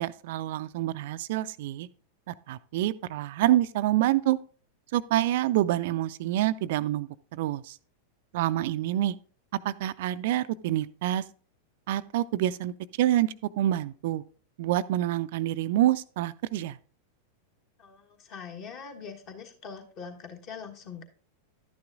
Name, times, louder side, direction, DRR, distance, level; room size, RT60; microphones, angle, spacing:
voice 1, 0.0-1.9 2.3-4.4 4.9-7.8 8.3-9.2 9.6-11.2 11.9-12.7 13.0-14.2 14.6-16.8, right 13 dB, 50° right, 0.3 m, -27 dB
voice 2, 17.8-21.0, left 6 dB, 40° left, 1.3 m, -43 dB
11.5 x 9.5 x 2.5 m
figure-of-eight pair, 90°, 0 cm